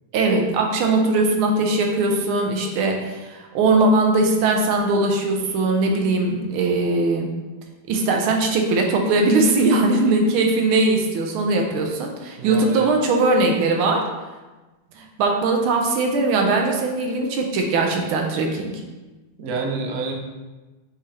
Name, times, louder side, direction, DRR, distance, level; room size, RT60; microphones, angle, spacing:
voice 1, 0.1-7.3 7.9-14.0 15.0-18.8, right 2 dB, 90° right, 2 dB, 1.5 m, -20 dB
voice 2, 12.4-13.0 19.4-20.1, right 4 dB, 65° right, 1 dB, 0.8 m, -28 dB
5.9 x 2.8 x 3.2 m, 1.2 s
omnidirectional pair, 2.3 m